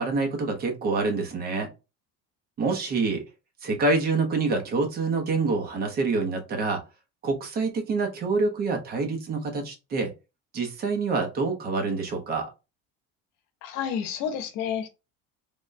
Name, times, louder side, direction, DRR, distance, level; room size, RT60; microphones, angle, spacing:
voice 1, 0.0-1.7 2.6-3.2 3.6-6.8 7.2-10.1 10.5-12.5, right 3 dB, 30° right, 0.8 m, -26 dB
voice 2, 13.6-14.9, left 8 dB, 80° left, 0.8 m, -30 dB
3.4 x 2.2 x 2.6 m
cardioid pair, 175°, 30 cm